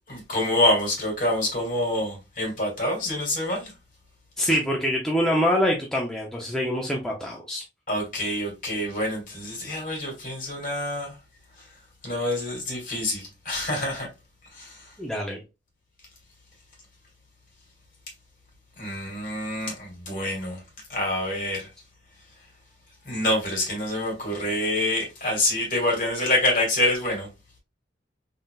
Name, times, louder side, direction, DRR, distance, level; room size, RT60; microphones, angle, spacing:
voice 1, 0.1-3.7 7.9-11.2 12.0-14.1 14.5-14.9 18.8-20.6 20.9-21.7 23.1-27.3, left 1 dB, 45° left, 2.1 m, -26 dB
voice 2, 4.4-7.6 15.0-15.4, equal, 5° left, 0.5 m, -25 dB
3.9 x 3.7 x 2.3 m
head